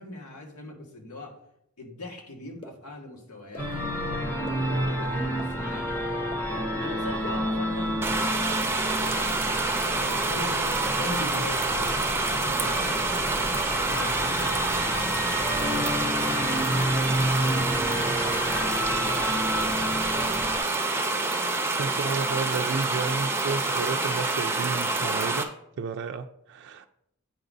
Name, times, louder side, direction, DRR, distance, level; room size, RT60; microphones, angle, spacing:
voice 1, 0.0-1.4 1.8-6.2 6.8-8.4 9.0-13.1 13.6-16.1 16.7-18.6 19.4-20.5, left 2 dB, 80° left, 0 dB, 1.8 m, -41 dB
sound 1, 2.6-2.7 3.5-3.6 4.5-4.6 5.4-5.5 6.3-6.4 7.2-7.3, left 2 dB, 25° left, 0.9 m, -40 dB
sound 2, 3.6-20.6, equal, 10° left, 1.2 m, -30 dB
sound 3, 8.0-25.4, right 3 dB, 10° right, 0.7 m, -27 dB
voice 2, 21.8-25.5 25.8-26.9, right 4 dB, 50° right, 5 dB, 0.4 m, -31 dB
9.1 x 3.9 x 5.0 m, 0.75 s
head